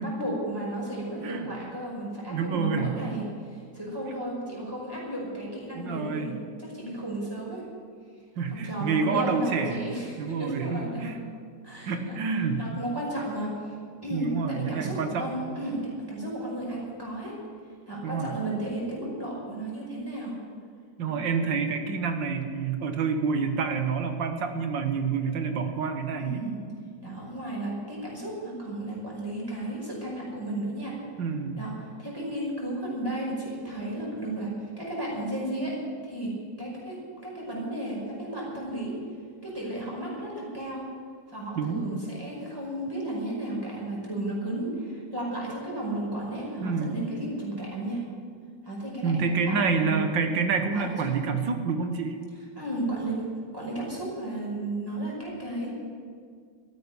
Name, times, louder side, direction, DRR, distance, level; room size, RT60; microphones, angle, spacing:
voice 1, 0.0-3.2 3.5-6.3 6.6-7.6 8.5-11.1 11.6-12.2 12.6-13.5 14.0-17.3 17.9-20.4 21.1-21.2 26.2-26.6 27.0-31.0 31.6-31.7 32.0-34.5 34.8-36.3 36.6-38.9 39.4-40.9 41.3-48.0 48.6-50.2 50.7-51.2 52.6-53.2 53.5-55.7, right 1 dB, 10° right, -4 dB, 5.4 m, -33 dB
voice 2, 1.2-1.5 2.3-3.0 5.7-6.4 8.4-9.9 10.2-11.2 11.9-12.6 14.1-15.3 18.0-18.3 21.0-26.4 31.2-31.7 41.6-41.9 46.6-47.0 49.0-52.2, right 5 dB, 80° right, 6 dB, 1.9 m, -28 dB
13.5 x 9.4 x 9.9 m, 2.1 s
omnidirectional pair, 2.0 m